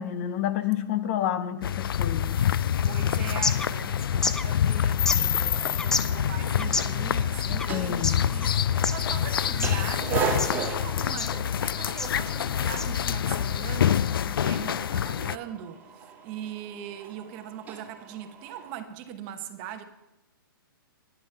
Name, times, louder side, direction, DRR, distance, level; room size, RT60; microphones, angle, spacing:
voice 1, 0.0-2.4 7.7-8.2, left 10 dB, 35° left, 0.7 m, -29 dB
sound 1, 1.6-15.4, left 9 dB, 75° left, 0.4 m, -26 dB
voice 2, 2.8-19.8, right 10 dB, 30° right, 0.9 m, -41 dB
sound 2, 3.2-13.4, left 3 dB, 5° left, 0.3 m, -34 dB
sound 3, 5.4-18.7, right 6 dB, 15° right, 2.9 m, -38 dB
11.5 x 10.5 x 5.6 m
hypercardioid pair, 150°, 12 cm